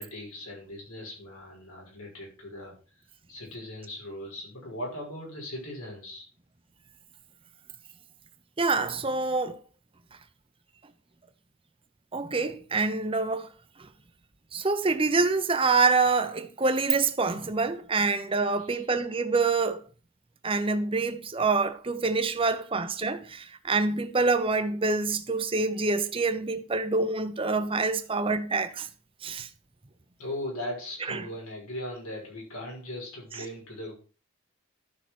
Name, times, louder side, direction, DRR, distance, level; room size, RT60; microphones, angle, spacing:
voice 1, 0.0-2.8 3.3-6.3 18.6-18.8 30.2-33.9, left 1 dB, 90° left, 6.1 m, -39 dB
voice 2, 8.6-9.6 12.1-13.5 14.5-19.8 20.4-28.9 29.2-29.5 31.1-31.2, right 3 dB, 25° right, 0.9 m, -26 dB
12.0 x 5.8 x 6.2 m
head